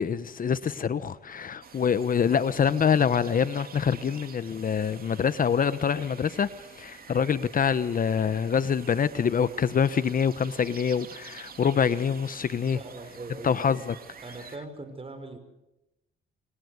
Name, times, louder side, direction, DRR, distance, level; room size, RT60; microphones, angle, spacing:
voice 1, 0.0-12.8 13.4-14.0, left 7 dB, 45° left, 1.1 m, -25 dB
sound 1, 1.6-14.6, right 6 dB, 50° right, 3.1 m, -48 dB
voice 2, 12.7-13.5 14.2-15.4, right 2 dB, 30° right, 6.0 m, -40 dB
29.5 x 23.5 x 8.1 m
cardioid pair, 90°, 20 cm